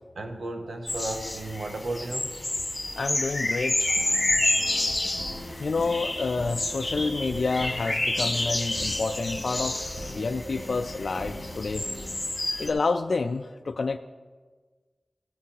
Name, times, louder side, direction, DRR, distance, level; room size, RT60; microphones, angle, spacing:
voice 1, 0.2-2.4, right 2 dB, 75° right, 4 dB, 0.8 m, -34 dB
sound 1, 0.9-12.7, left 2 dB, 30° left, 1.7 m, -29 dB
voice 2, 3.0-3.9 5.6-11.8 12.6-14.0, left 4 dB, 65° left, 7 dB, 0.3 m, -29 dB
sound 2, 3.8-12.3, equal, 55° right, 2.7 m, -40 dB
16.0 x 9.7 x 2.9 m, 1.4 s
wide cardioid pair, 80°, 0 cm